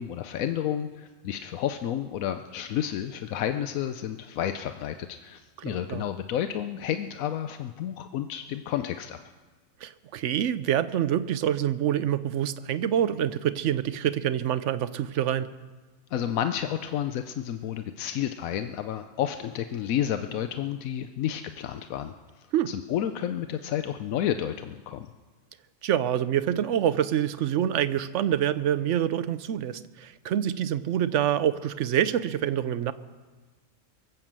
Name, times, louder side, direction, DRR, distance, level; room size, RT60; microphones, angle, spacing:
voice 1, 0.0-9.2 16.1-22.1 22.7-25.1, left 10 dB, 90° left, 8 dB, 1.1 m, -31 dB
voice 2, 5.6-6.0 9.8-15.5 22.5-22.7 25.8-32.9, right 10 dB, 65° right, 14 dB, 0.9 m, -26 dB
23.0 x 7.9 x 7.4 m, 1.3 s
omnidirectional pair, 1.4 m